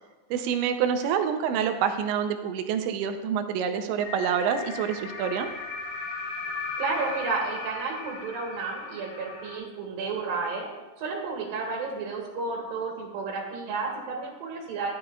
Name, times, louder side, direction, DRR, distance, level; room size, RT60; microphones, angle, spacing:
voice 1, 0.3-5.5, right 8 dB, 80° right, 7 dB, 2.8 m, -27 dB
sound 1, 4.0-9.6, left 4 dB, 80° left, 4.5 m, -36 dB
voice 2, 6.8-10.7 11.0-14.9, right 4 dB, 60° right, -2 dB, 3.0 m, -32 dB
13.5 x 10.5 x 2.3 m, 1.1 s
omnidirectional pair, 5.5 m